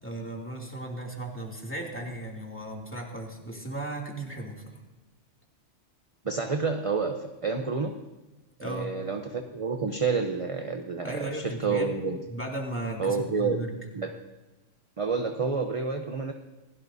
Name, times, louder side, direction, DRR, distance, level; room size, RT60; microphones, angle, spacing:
voice 1, 0.0-4.8 8.6-8.9 11.0-11.9 12.3-13.7, right 1 dB, 10° left, -2 dB, 2.6 m, -36 dB
voice 2, 6.2-7.9 8.6-12.2 13.0-13.6 13.9-14.1 15.0-16.3, right 4 dB, 30° right, 4 dB, 0.8 m, -29 dB
27.0 x 17.0 x 2.7 m, 1.1 s
omnidirectional pair, 1.3 m